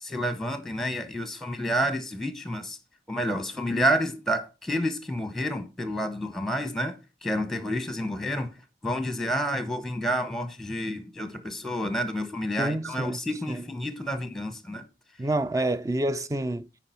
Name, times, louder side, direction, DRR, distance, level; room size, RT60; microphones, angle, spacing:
voice 1, 0.0-2.8 3.1-8.5 8.8-14.9, equal, ahead, 0.9 m, -29 dB
voice 2, 12.6-13.2 13.5-13.6 15.2-16.7, right 1 dB, 20° right, 0.4 m, -28 dB
9.8 x 4.7 x 4.4 m
head